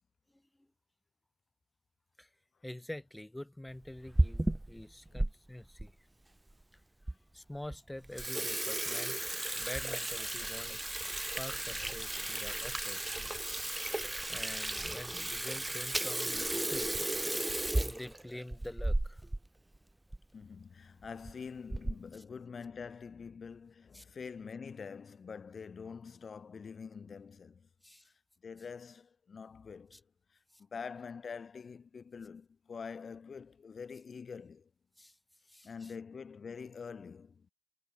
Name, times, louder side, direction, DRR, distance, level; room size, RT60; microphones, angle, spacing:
voice 1, 2.6-5.9 7.3-9.2 9.5-10.8 11.4-13.0 14.3-16.9 17.7-19.2 23.9-24.0 27.8-28.1 29.9-30.0 35.0-35.1 35.5-35.9, left 1 dB, 10° left, 4.3 m, -46 dB
Water tap faucet / Sink (filling or washing), 3.9-5.3 5.8-5.9 6.6-6.7 7.1-7.2 7.5-7.7 8.0-19.4 19.7-19.8 20.1-20.2 21.0-21.3 21.7-22.1, right 1 dB, 10° right, 0.4 m, -34 dB
voice 2, 20.3-27.7 28.0-28.1 28.4-30.0 30.6-34.7 35.6-37.5, left 5 dB, 40° left, 2.0 m, -46 dB
cardioid pair, 90°, 0 cm